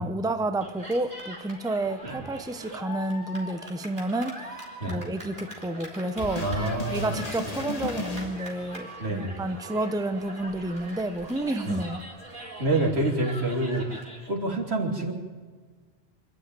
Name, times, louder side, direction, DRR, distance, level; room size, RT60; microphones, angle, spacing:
voice 1, 0.0-6.5 6.9-12.0, right 2 dB, 5° right, 8 dB, 0.8 m, -30 dB
Cheering, 0.6-14.3, right 1 dB, 55° right, 4.2 m, -42 dB
sound 1, 6.2-8.7 9.7-9.8, left 3 dB, 35° left, 1.7 m, -35 dB
voice 2, 6.4-7.2 9.0-9.4 11.6-11.8 12.6-15.1, right 2 dB, 80° right, 0 dB, 3.4 m, -27 dB
26.5 x 12.5 x 9.2 m, 1.5 s
omnidirectional pair, 1.1 m